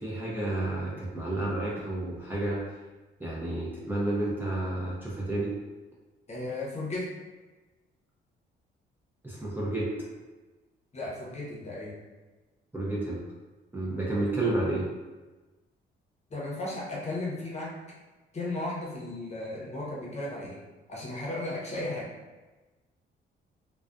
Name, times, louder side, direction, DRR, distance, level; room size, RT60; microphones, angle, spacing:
voice 1, 0.0-2.6 3.2-5.5 9.2-9.9 12.7-13.2 13.7-14.9, right 2 dB, 10° right, -6 dB, 0.5 m, -30 dB
voice 2, 6.3-7.1 10.9-12.0 16.3-17.8 18.3-20.6 20.9-22.1, left 2 dB, 35° left, -4 dB, 0.8 m, -35 dB
2.4 x 2.3 x 2.3 m, 1.2 s
cardioid pair, 90°, 20 cm